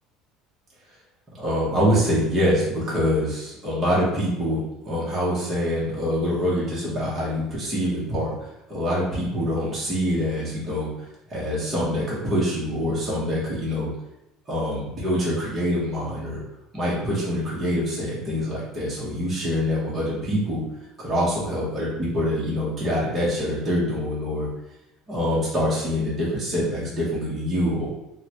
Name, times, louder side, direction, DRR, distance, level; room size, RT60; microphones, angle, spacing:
voice 1, 1.4-13.9 14.5-16.4 16.7-20.6 21.0-24.5 25.1-27.9, equal, 20° right, -8 dB, 1.0 m, -25 dB
3.7 x 2.2 x 2.9 m, 0.90 s
cardioid pair, 150°, 0 cm